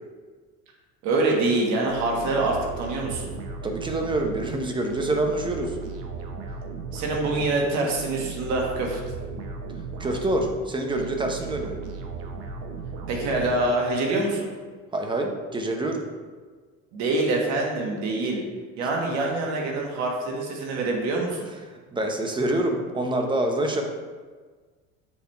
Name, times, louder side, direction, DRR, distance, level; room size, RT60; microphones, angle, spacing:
voice 1, 1.0-3.3 6.9-9.0 13.1-14.5 16.9-18.4 18.8-21.5, right 2 dB, 70° right, 0 dB, 1.5 m, -25 dB
sound 1, 1.9-14.1, right 4 dB, 55° right, 0.8 m, -36 dB
voice 2, 3.6-5.8 10.0-11.8 14.9-16.0 21.9-23.8, right 1 dB, 15° right, 3 dB, 0.7 m, -26 dB
7.1 x 3.4 x 4.5 m, 1.5 s
cardioid pair, 130°, 29 cm